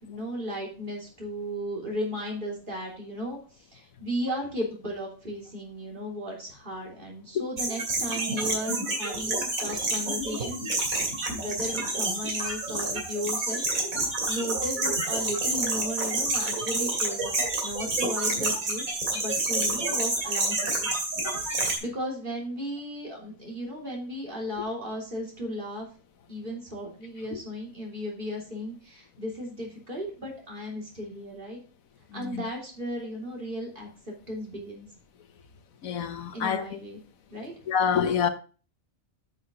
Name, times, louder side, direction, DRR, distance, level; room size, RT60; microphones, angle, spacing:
voice 1, 0.0-10.6 11.3-17.4 17.6-18.8 19.1-20.9 21.3-25.9 26.3-31.6 32.1-34.9 36.3-37.0 37.3-37.5, equal, 40° right, 3.4 m, -35 dB
sound 1, 7.6-21.8, right 2 dB, 90° right, 3.1 m, -28 dB
voice 2, 32.1-32.4 35.8-36.6 37.7-38.3, left 7 dB, 85° left, 1.4 m, -26 dB
10.0 x 5.9 x 3.7 m
omnidirectional pair, 1.4 m